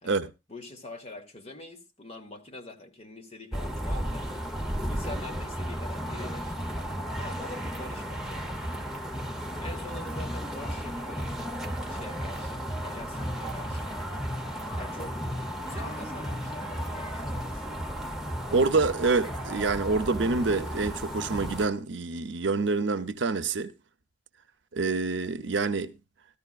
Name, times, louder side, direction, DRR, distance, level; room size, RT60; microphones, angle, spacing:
voice 1, 0.5-4.3 4.9-6.5 7.2-8.6 9.6-11.4 11.9-13.9 14.8-15.2 15.6-17.8, left 1 dB, 30° left, 1.4 m, -45 dB
sound 1, 3.5-21.7, equal, ahead, 0.8 m, -34 dB
voice 2, 18.5-23.7 24.7-26.0, right 3 dB, 70° right, 0.7 m, -27 dB
14.0 x 13.5 x 2.4 m
head